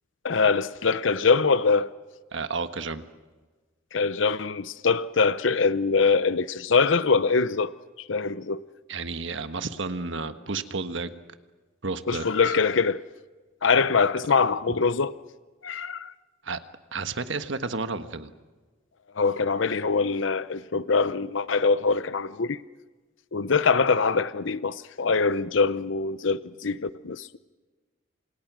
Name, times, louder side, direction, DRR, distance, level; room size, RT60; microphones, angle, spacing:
voice 1, 0.2-1.9 3.9-7.7 8.1-8.6 12.1-13.0 13.6-15.1 15.6-16.1 19.2-22.6 23.3-27.4, left 4 dB, 70° left, 0.7 m, -23 dB
voice 2, 2.3-3.0 8.9-11.2 11.8-12.5 16.4-16.6 16.9-18.3, right 4 dB, 65° right, 1.5 m, -32 dB
29.0 x 27.0 x 6.2 m
head